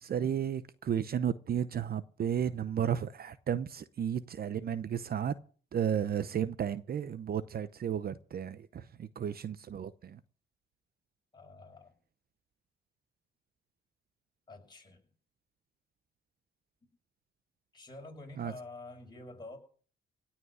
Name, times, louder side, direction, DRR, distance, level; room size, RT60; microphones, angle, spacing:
voice 1, 0.0-5.3 5.7-10.2 18.4-18.5, right 8 dB, 50° right, 0.8 m, -33 dB
voice 2, 11.3-12.0 14.5-15.0 17.7-19.6, left 2 dB, 20° left, 6.2 m, -48 dB
17.0 x 6.0 x 9.7 m
cardioid pair, 90°, 20 cm